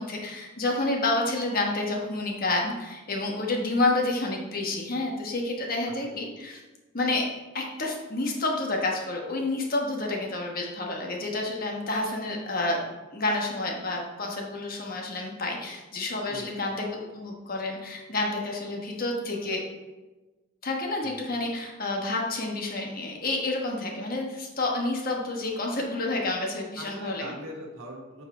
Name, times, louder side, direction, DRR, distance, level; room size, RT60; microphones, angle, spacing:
voice 1, 0.0-6.6 6.9-7.3 7.5-12.8 13.1-19.6 20.6-27.3, left 2 dB, 45° left, 0 dB, 1.2 m, -29 dB
voice 2, 5.8-6.2 16.3-16.6 21.0-21.3 26.8-28.2, right 1 dB, 90° right, -1 dB, 1.4 m, -41 dB
8.6 x 4.7 x 3.7 m, 1.2 s
head